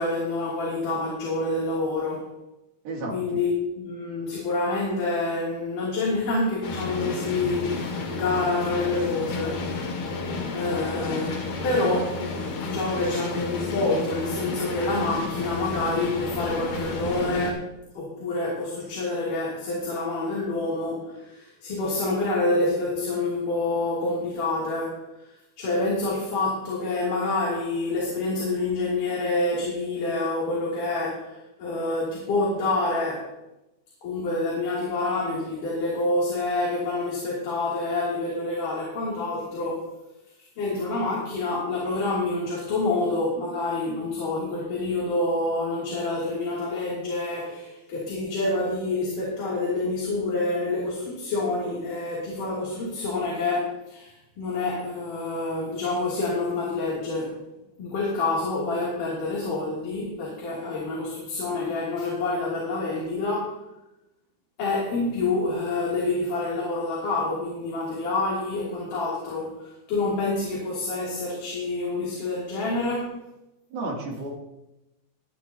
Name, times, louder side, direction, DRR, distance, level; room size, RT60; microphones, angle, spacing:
voice 1, 0.0-2.3 3.1-9.7 10.5-12.2 12.6-17.7 17.9-25.0 25.6-33.3 34.0-39.9 40.6-57.3 57.8-63.6 64.6-73.2, left 2 dB, 55° left, -5 dB, 4.4 m, -27 dB
sound 1, 6.6-17.5, left 3 dB, 75° left, 4.2 m, -31 dB
voice 2, 73.7-74.3, right 2 dB, 70° right, -1 dB, 4.5 m, -31 dB
22.5 x 10.5 x 2.9 m, 0.93 s
omnidirectional pair, 4.5 m